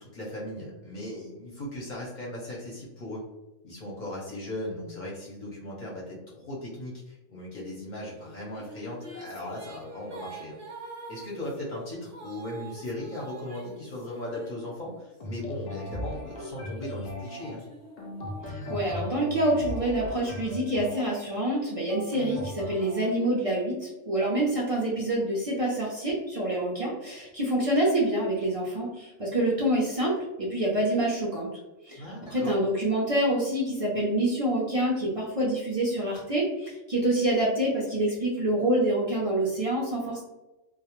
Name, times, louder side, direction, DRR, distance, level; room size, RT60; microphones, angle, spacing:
voice 1, 0.0-3.2 3.6-10.6 11.1-17.6 32.0-32.5, left 1 dB, 50° left, -5 dB, 0.6 m, -38 dB
sound 1, 8.2-15.2 15.8-19.6, right 3 dB, 40° right, 0.7 m, -46 dB
sound 2, 15.2-23.1, left 1 dB, 85° left, 0.3 m, -38 dB
voice 2, 18.4-31.5 31.8-32.0 32.3-40.2, right 1 dB, 60° right, -5 dB, 0.3 m, -27 dB
2.2 x 2.0 x 2.9 m, 1.0 s
omnidirectional pair, 1.3 m